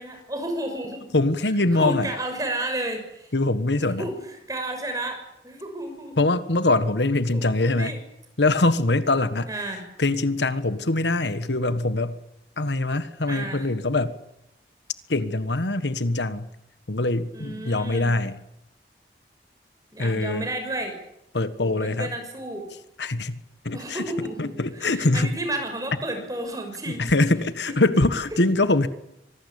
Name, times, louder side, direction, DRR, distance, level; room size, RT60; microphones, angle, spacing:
voice 1, 0.0-1.1 1.7-3.3 4.0-6.2 7.3-8.0 9.5-9.8 13.3-13.7 17.3-18.1 19.9-21.0 21.6-22.7 23.7-27.1 27.7-27.8, right 1 dB, 20° right, 5 dB, 6.2 m, -32 dB
voice 2, 1.1-2.1 3.3-4.1 6.2-8.0 8.4-9.5 10.0-12.2 12.6-14.1 15.1-16.5 16.9-18.3 20.0-20.5 21.3-22.1 23.0-24.0 24.4-25.3 27.0-28.9, left 2 dB, 85° left, 12 dB, 1.5 m, -23 dB
25.0 x 19.0 x 8.6 m, 0.84 s
head